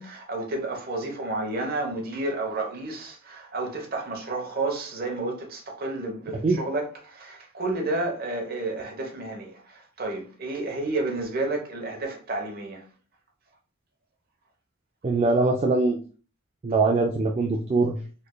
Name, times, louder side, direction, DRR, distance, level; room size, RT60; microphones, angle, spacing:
voice 1, 0.0-12.8, right 2 dB, 45° right, 0.9 m, -31 dB
voice 2, 15.0-16.0 16.6-18.0, right 3 dB, 30° right, 0.3 m, -22 dB
4.0 x 3.2 x 2.2 m
head